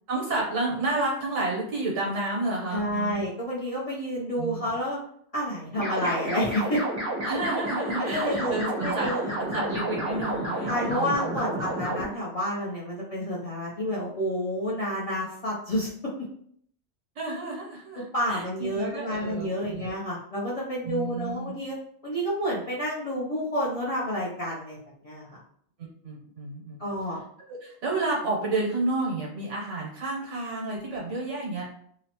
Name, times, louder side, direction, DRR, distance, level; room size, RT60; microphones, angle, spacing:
voice 1, 0.1-3.2 4.4-4.6 7.2-11.8 17.2-19.9 20.8-21.5 25.8-26.8 27.5-31.7, right 2 dB, 85° right, -2 dB, 1.2 m, -31 dB
voice 2, 2.7-5.0 5.3-6.8 8.1-9.6 10.7-15.9 18.1-21.8 22.0-24.8 25.0-25.4 26.8-27.2, equal, 50° left, -6 dB, 0.4 m, -29 dB
sound 1, 5.8-12.0, right 1 dB, 20° right, 0.6 m, -30 dB
2.8 x 2.0 x 2.8 m, 0.65 s
omnidirectional pair, 1.2 m